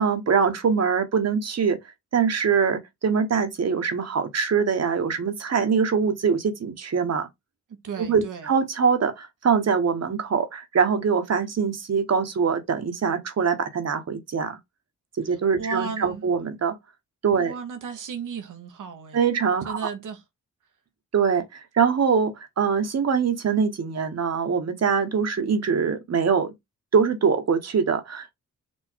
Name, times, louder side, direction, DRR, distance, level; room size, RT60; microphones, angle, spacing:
voice 1, 0.0-1.8 2.1-7.3 8.0-14.6 15.2-16.8 17.2-17.5 19.1-19.9 21.1-26.5 26.9-28.3, right 6 dB, 55° right, 1.2 m, -23 dB
voice 2, 7.8-8.5 15.6-16.3 17.4-19.2 19.7-20.2, right 6 dB, 85° right, 1.1 m, -34 dB
4.5 x 2.6 x 4.5 m
cardioid pair, 80°, 30 cm